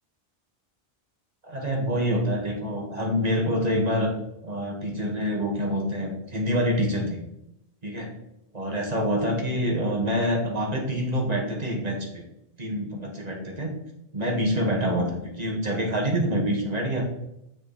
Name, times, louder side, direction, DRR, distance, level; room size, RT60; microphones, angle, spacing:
voice 1, 1.4-4.1 4.4-7.2 7.8-8.1 8.5-12.2 12.6-13.7 14.1-17.1, equal, 35° right, 0 dB, 1.9 m, -26 dB
7.0 x 6.6 x 4.2 m, 0.84 s
omnidirectional pair, 1.2 m